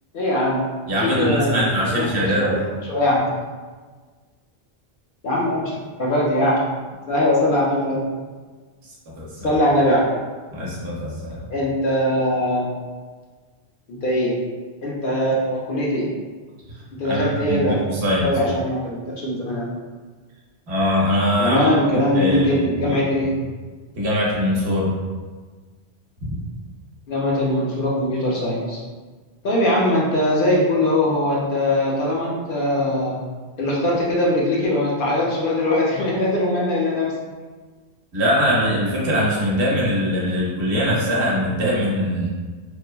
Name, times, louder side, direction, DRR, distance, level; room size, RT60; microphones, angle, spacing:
voice 1, 0.1-0.6 1.0-1.7 1.9-2.1 2.3-2.5 2.9-3.2 5.2-5.7 6.0-6.6 7.1-8.1 9.4-10.0 11.5-12.6 13.9-14.3 14.8-16.1 17.0-17.8 18.2-19.7 21.4-23.3 27.1-28.8 29.4-33.2 33.6-37.1, left 1 dB, 60° left, -5 dB, 0.7 m, -21 dB
voice 2, 0.9-2.6 9.2-9.6 10.5-11.4 17.0-18.3 20.7-21.7 22.1-23.0 24.0-24.9 26.3-26.4 38.1-42.3, equal, 75° right, -5 dB, 1.0 m, -22 dB
3.2 x 2.1 x 2.2 m, 1.4 s
omnidirectional pair, 1.1 m